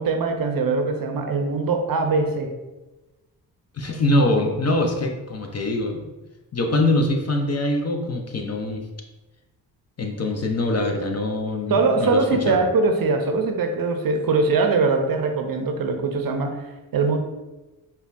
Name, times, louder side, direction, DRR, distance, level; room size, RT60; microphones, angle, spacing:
voice 1, 0.0-2.5 11.7-16.6 16.9-17.2, right 4 dB, 50° right, 5 dB, 0.6 m, -22 dB
voice 2, 3.7-6.1 6.5-8.8 10.0-12.6, left 1 dB, 35° left, 3 dB, 0.6 m, -23 dB
5.1 x 2.3 x 2.5 m, 1.1 s
supercardioid pair, 40°, 44 cm